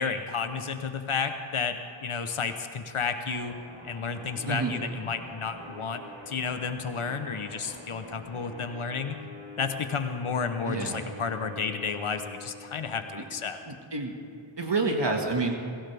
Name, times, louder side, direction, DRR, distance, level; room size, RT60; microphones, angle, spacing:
voice 1, 0.0-3.5 3.8-9.2 9.6-13.6, left 5 dB, 85° left, 8 dB, 0.9 m, -32 dB
sound 1, 3.3-13.5, left 1 dB, 75° right, 4.5 m, -46 dB
voice 2, 10.7-11.1 13.2-13.3 13.7-14.1 14.6-15.6, right 3 dB, 55° right, 2 dB, 1.8 m, -28 dB
23.5 x 15.5 x 3.4 m, 2.3 s
wide cardioid pair, 50°, 49 cm